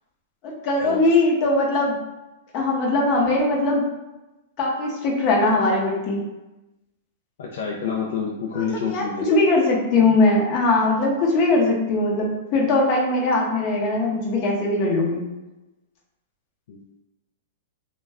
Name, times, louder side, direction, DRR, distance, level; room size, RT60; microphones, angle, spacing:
voice 1, 0.4-1.9 2.5-3.9 4.6-6.2 8.5-15.2, left 2 dB, 35° left, -2 dB, 0.7 m, -20 dB
voice 2, 7.4-9.4 16.7-16.8, left 6 dB, 70° left, -1 dB, 0.3 m, -28 dB
2.3 x 2.1 x 3.4 m, 1.0 s
hypercardioid pair, 145°, 0 cm